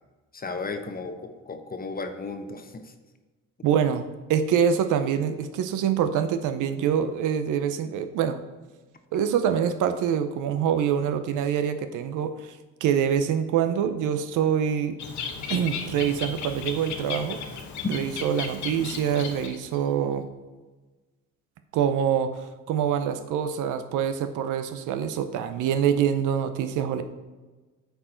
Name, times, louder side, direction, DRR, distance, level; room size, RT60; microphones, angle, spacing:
voice 1, 0.3-2.9, left 3 dB, 30° left, 7 dB, 0.9 m, -35 dB
voice 2, 3.6-8.4 9.1-12.3 12.8-15.0 15.5-17.5 17.9-20.3 21.7-27.0, right 8 dB, 90° right, 9 dB, 0.7 m, -25 dB
Bird, 15.0-19.8, left 6 dB, 70° left, 1.0 m, -35 dB
8.8 x 4.6 x 4.4 m, 1.3 s
cardioid pair, 90°, 30 cm